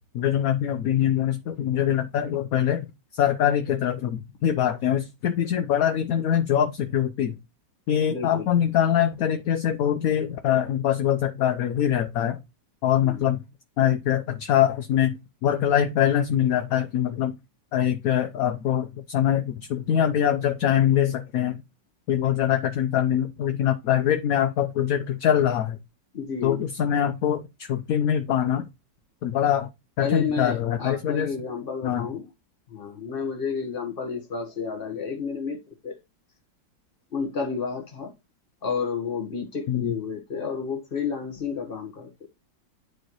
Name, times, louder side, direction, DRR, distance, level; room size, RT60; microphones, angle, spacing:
voice 1, 0.1-2.9 3.1-7.4 7.9-12.4 12.8-13.4 13.8-15.2 15.4-17.3 17.7-21.6 22.1-25.8 26.4-28.7 29.2-29.7 30.0-31.3 31.8-32.1 39.7-39.9, left 10 dB, 65° left, 0.9 m, -23 dB
voice 2, 8.1-8.5 13.0-13.2 26.1-26.7 30.0-32.3 32.7-36.0 37.1-38.1 38.6-42.3, left 5 dB, 30° left, 1.5 m, -31 dB
9.7 x 4.3 x 3.1 m
omnidirectional pair, 2.0 m